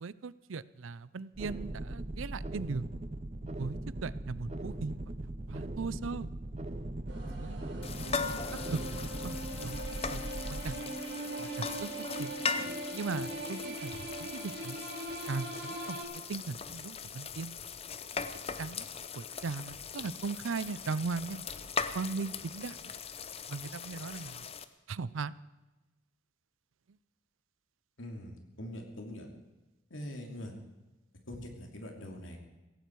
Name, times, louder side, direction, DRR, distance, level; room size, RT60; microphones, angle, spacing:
voice 1, 0.0-2.8 3.6-3.8 4.0-4.9 5.5-6.3 7.3-7.6 8.0-8.4 8.7-8.8 9.2-9.8 10.1-10.2 10.5-10.7 11.6-11.9 12.2-12.3 12.9-13.9 14.2-14.8 15.3-16.0 16.3-17.5 18.6-18.8 19.2-21.4 21.9-22.7 23.5-24.3 24.9-25.3, right 4 dB, 85° right, 18 dB, 0.5 m, -38 dB
sound 1, 1.3-10.8, right 1 dB, 30° right, 0.7 m, -40 dB
sound 2, 7.1-16.0, right 1 dB, 60° right, 3.9 m, -41 dB
sound 3, 7.8-24.6, left 5 dB, 30° left, 0.6 m, -40 dB
voice 2, 28.0-29.3 29.9-30.5 31.3-32.4, left 1 dB, 80° left, 2 dB, 2.9 m, -43 dB
16.5 x 16.0 x 4.7 m, 1.1 s
head